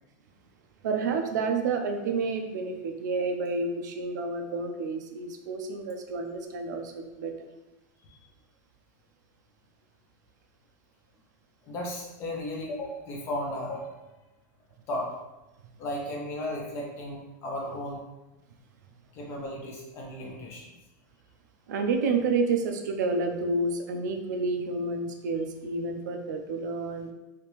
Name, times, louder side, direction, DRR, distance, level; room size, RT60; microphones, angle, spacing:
voice 1, 0.8-7.5 21.7-27.1, right 3 dB, 80° right, 5 dB, 0.5 m, -29 dB
voice 2, 11.7-14.0 14.9-15.2 15.8-18.0 19.1-20.6, left 1 dB, 25° left, -1 dB, 0.7 m, -35 dB
3.5 x 2.8 x 3.1 m, 1.0 s
supercardioid pair, 170°, 10 cm